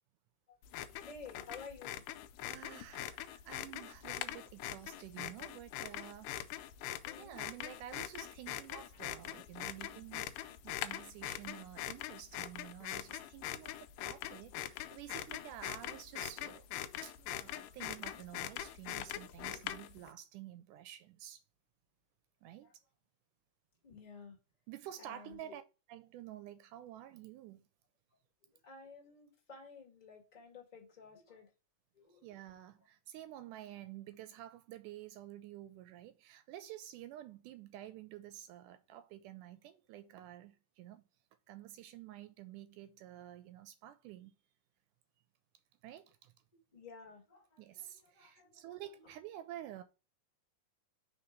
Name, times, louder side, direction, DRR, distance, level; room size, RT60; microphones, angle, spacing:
sound 1, 0.6-20.1, left 12 dB, 85° left, 2.2 m, -43 dB
voice 1, 0.9-2.0 7.0-7.4 8.9-9.5 19.4-19.6 22.6-22.7 23.8-24.4 25.0-25.6 28.4-31.5 31.9-32.3 46.7-48.7, left 4 dB, 20° left, 1.1 m, -54 dB
voice 2, 2.4-6.3 7.2-13.8 14.0-16.7 17.0-21.4 22.4-22.7 24.7-25.6 25.9-27.7 32.2-41.1 41.5-44.3 45.8-46.3 47.6-49.8, right 12 dB, 80° right, 2.0 m, -50 dB
4.3 x 4.2 x 5.3 m
omnidirectional pair, 3.8 m